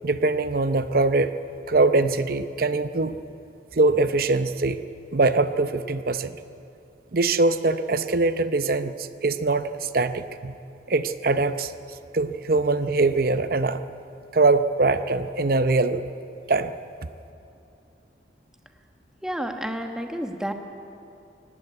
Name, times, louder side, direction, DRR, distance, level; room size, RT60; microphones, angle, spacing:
voice 1, 0.0-1.3 1.7-3.2 3.7-4.8 5.1-6.3 7.1-10.5 10.9-11.7 12.1-13.8 14.3-16.0 16.5-16.7, right 3 dB, 50° right, 11 dB, 0.7 m, -22 dB
voice 2, 19.2-20.5, equal, 5° right, 4 dB, 1.2 m, -30 dB
18.0 x 16.0 x 9.6 m, 2.7 s
head